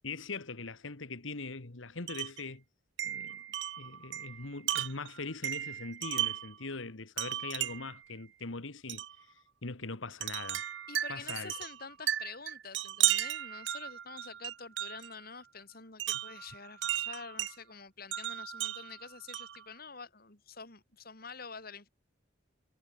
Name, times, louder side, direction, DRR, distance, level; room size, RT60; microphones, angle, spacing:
voice 1, 0.0-2.6 3.0-3.4 3.8-9.0 9.3-10.6 11.1-11.5, left 3 dB, 80° left, 1.7 m, -41 dB
Wind chime, 2.1-2.4 3.0-6.6 7.2-8.0 8.9-9.1 10.2-15.1 16.0-17.5 18.1-19.6, right 13 dB, 60° right, 0.6 m, -35 dB
voice 2, 10.9-21.9, left 5 dB, 50° left, 3.6 m, -47 dB
head